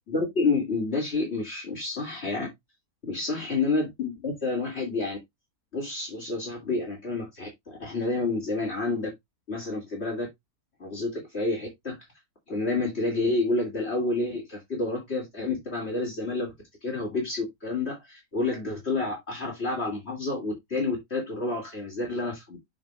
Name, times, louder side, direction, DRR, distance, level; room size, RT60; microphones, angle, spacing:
voice 1, 0.1-2.5 3.0-5.2 5.7-9.1 9.5-10.3 10.8-12.0 12.5-16.5 16.8-22.6, left 3 dB, 45° left, 2.9 m, -29 dB
7.7 x 6.4 x 2.4 m
omnidirectional pair, 1.5 m